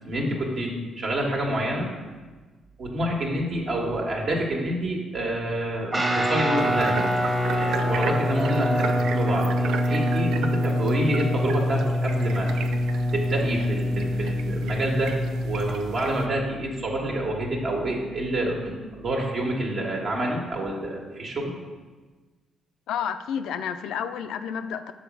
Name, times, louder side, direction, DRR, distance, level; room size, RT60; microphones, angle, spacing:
voice 1, 0.0-1.9 2.8-7.0 7.5-12.5 13.1-15.2 15.4-21.5, right 1 dB, 60° right, -1 dB, 1.6 m, -28 dB
Guitar, 5.9-15.7, left 1 dB, 25° right, 1.3 m, -25 dB
sound 1, 6.6-16.2, right 6 dB, 80° right, 0.5 m, -36 dB
voice 2, 22.9-24.9, left 8 dB, 80° left, 10 dB, 0.4 m, -30 dB
7.1 x 4.2 x 6.1 m, 1.3 s
cardioid pair, 90°, 0 cm